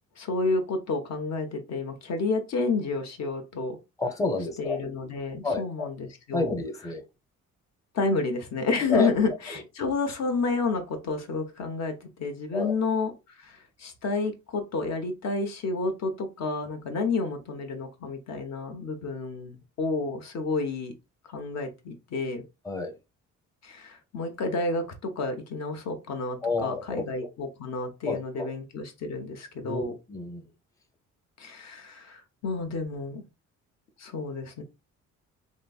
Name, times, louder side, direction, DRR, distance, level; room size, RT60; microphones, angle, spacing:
voice 1, 0.2-3.8 4.6-6.6 7.9-20.9 21.3-22.4 23.6-29.9 31.4-33.2 34.0-34.6, left 3 dB, 60° left, 0.8 m, -30 dB
voice 2, 4.0-4.8 5.4-5.9 6.3-7.0 8.9-9.1 12.5-12.7 22.6-22.9 26.4-27.3 28.1-28.5 29.6-30.4, left 3 dB, 10° left, 0.6 m, -30 dB
3.0 x 2.6 x 2.3 m
cardioid pair, 90°, 30 cm